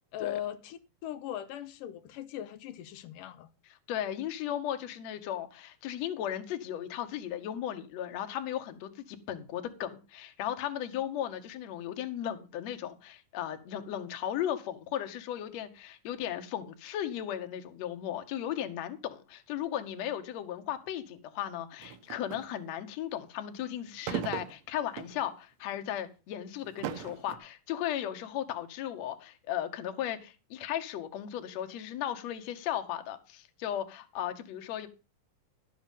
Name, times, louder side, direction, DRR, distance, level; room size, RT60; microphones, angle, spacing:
voice 1, 0.1-3.5, left 11 dB, 85° left, 2.4 m, -39 dB
voice 2, 3.9-34.9, left 11 dB, 65° left, 2.1 m, -36 dB
sound 1, 21.8-22.5 24.0-25.2 25.7-25.9 26.6-27.4, right 10 dB, 70° right, 1.8 m, -37 dB
12.0 x 7.5 x 5.3 m
omnidirectional pair, 3.8 m